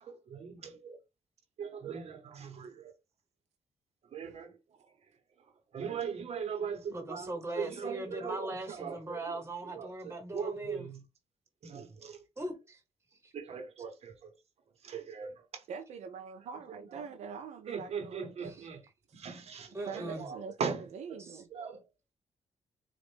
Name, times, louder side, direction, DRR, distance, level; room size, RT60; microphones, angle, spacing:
voice 1, 0.0-1.0 1.6-2.9 4.1-4.6 5.7-11.0 11.6-12.2 13.3-14.3 14.8-15.6 16.9-17.0 17.7-18.8 19.1-20.8 21.5-21.8, right 6 dB, 65° right, 1.0 m, -40 dB
voice 2, 6.9-10.9 12.4-12.8 13.2-13.3 18.5-18.7 19.7-20.3 21.2-21.4, right 1 dB, 20° right, 1.3 m, -40 dB
voice 3, 15.7-18.7 19.9-21.5, right 6 dB, 80° right, 0.5 m, -44 dB
4.2 x 2.4 x 3.4 m
cardioid pair, 95°, 12 cm